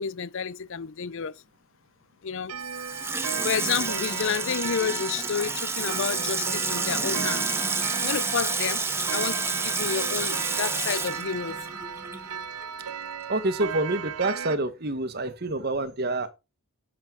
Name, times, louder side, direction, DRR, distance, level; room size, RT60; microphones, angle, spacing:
voice 1, 0.0-1.3 2.2-2.5 3.4-8.8 9.1-11.6, left 7 dB, 60° left, 0.5 m, -30 dB
Clock, 2.5-14.6, right 7 dB, 85° right, 0.7 m, -35 dB
Water tap faucet / Sink (filling or washing), 2.6-12.3 12.6-12.7, right 4 dB, 10° right, 1.4 m, -30 dB
voice 2, 13.3-16.3, right 2 dB, 45° right, 1.3 m, -27 dB
10.5 x 7.6 x 3.8 m
head